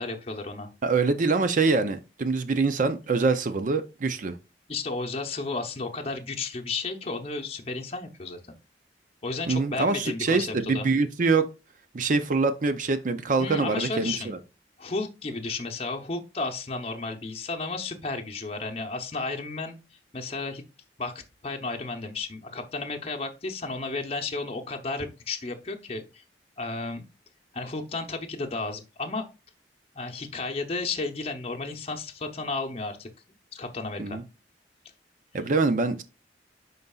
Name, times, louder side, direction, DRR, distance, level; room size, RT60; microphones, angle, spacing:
voice 1, 0.0-0.7 4.7-8.6 9.2-10.9 13.4-14.4 14.8-20.6 21.0-26.2 26.6-27.0 27.5-29.2 29.9-33.1 33.5-34.2, left 3 dB, 35° left, 0.7 m, -33 dB
voice 2, 0.8-4.4 9.5-11.5 11.9-14.4 34.0-34.2 35.3-36.0, right 4 dB, 45° right, 0.5 m, -24 dB
11.0 x 3.9 x 2.3 m
head